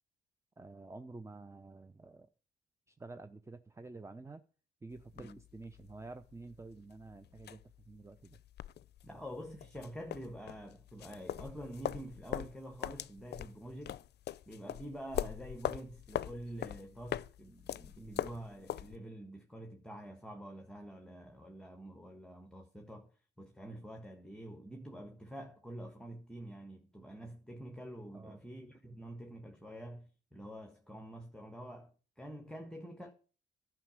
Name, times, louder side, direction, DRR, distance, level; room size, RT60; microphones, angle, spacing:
voice 1, 0.6-2.3 2.9-4.4 4.8-8.4 18.0-18.3 28.1-28.4, right 3 dB, 15° right, 0.7 m, -50 dB
sound 1, 4.9-19.0, left 11 dB, 55° left, 0.5 m, -42 dB
voice 2, 9.0-14.0 14.5-23.1 23.4-31.9 32.2-33.1, right 1 dB, 5° left, 1.5 m, -47 dB
11.0 x 6.0 x 9.0 m
cardioid pair, 90°, 20 cm